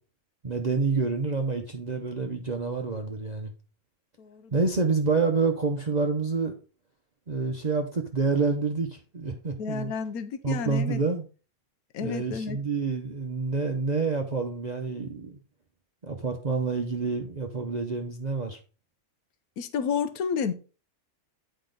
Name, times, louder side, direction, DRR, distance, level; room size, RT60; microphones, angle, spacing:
voice 1, 0.4-3.5 4.5-6.5 7.3-9.9 10.4-11.3 12.0-15.4 16.0-18.6, right 4 dB, 35° right, 0.7 m, -28 dB
voice 2, 4.2-4.5 9.6-11.0 11.9-12.6 19.6-20.5, left 6 dB, 75° left, 1.3 m, -31 dB
8.7 x 5.1 x 3.8 m
omnidirectional pair, 1.5 m